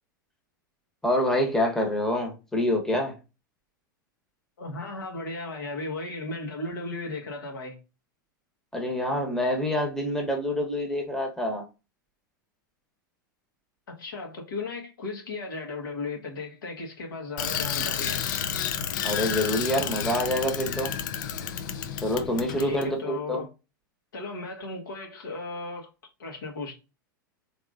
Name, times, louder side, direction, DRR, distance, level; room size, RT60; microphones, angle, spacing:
voice 1, 1.0-3.1 8.7-11.6 19.0-20.9 22.0-23.4, left 1 dB, 5° left, 1.1 m, -26 dB
voice 2, 4.6-7.8 14.0-18.3 22.6-23.5 24.1-25.9 26.2-26.7, left 3 dB, 75° left, 1.4 m, -36 dB
Bicycle, 17.4-22.9, left 8 dB, 60° left, 0.5 m, -31 dB
3.5 x 3.5 x 2.5 m
hypercardioid pair, 100°, 11 cm